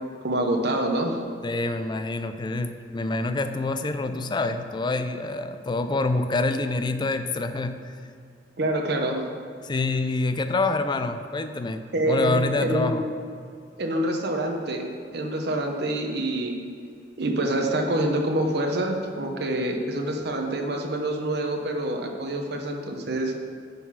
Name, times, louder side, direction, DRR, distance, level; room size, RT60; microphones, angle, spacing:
voice 1, 0.2-1.2 8.6-9.2 11.9-12.9 13.8-16.5 17.2-23.3, right 1 dB, 65° right, 3 dB, 0.9 m, -26 dB
voice 2, 1.4-7.8 9.6-13.0, left 2 dB, 25° left, 9 dB, 0.4 m, -26 dB
9.4 x 4.0 x 5.7 m, 2.3 s
head